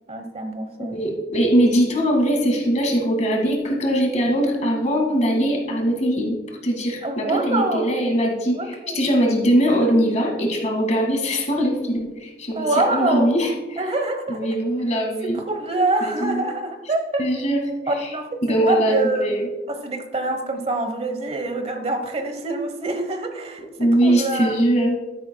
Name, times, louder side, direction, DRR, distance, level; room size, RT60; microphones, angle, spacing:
voice 1, 0.0-1.0 7.0-7.9 8.5-9.0 12.5-13.3 13.8-14.5 15.2-17.2 17.9-24.6, right 2 dB, 35° right, 6 dB, 1.1 m, -25 dB
voice 2, 0.8-6.4 6.6-13.8 14.3-15.4 16.0-16.5 17.2-17.6 18.0-18.1 18.4-19.5 23.8-25.0, equal, 40° left, 1 dB, 2.0 m, -21 dB
12.5 x 10.5 x 2.3 m, 1.1 s
head